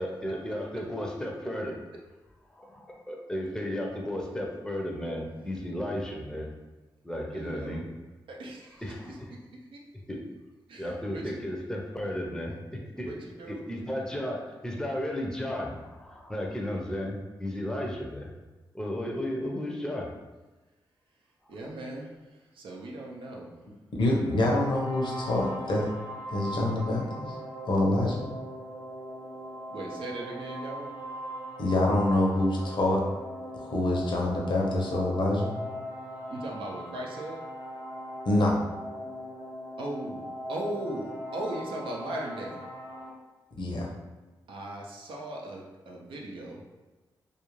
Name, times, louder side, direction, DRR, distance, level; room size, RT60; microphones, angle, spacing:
voice 1, 0.0-1.8 2.5-6.5 7.0-7.8 8.8-9.3 10.1-10.2 10.8-13.1 13.5-18.3 18.7-20.1, left 1 dB, 5° left, 0 dB, 0.5 m, -34 dB
voice 2, 7.3-7.8 8.3-9.4 9.7-9.8 10.7-11.4 12.5-12.6 13.0-13.6 21.5-23.5 24.1-24.5 29.7-30.9 36.3-37.4 39.8-42.6 44.5-46.6, right 1 dB, 85° right, -2 dB, 0.5 m, -38 dB
voice 3, 24.0-25.9 26.3-27.4 27.7-28.2 31.6-33.0 33.5-35.5 38.3-38.6 43.6-43.9, left 1 dB, 65° left, -2 dB, 0.7 m, -26 dB
sound 1, 24.3-43.1, equal, 30° right, 1.0 m, -39 dB
2.4 x 2.3 x 3.0 m, 1.2 s
cardioid pair, 60°, 9 cm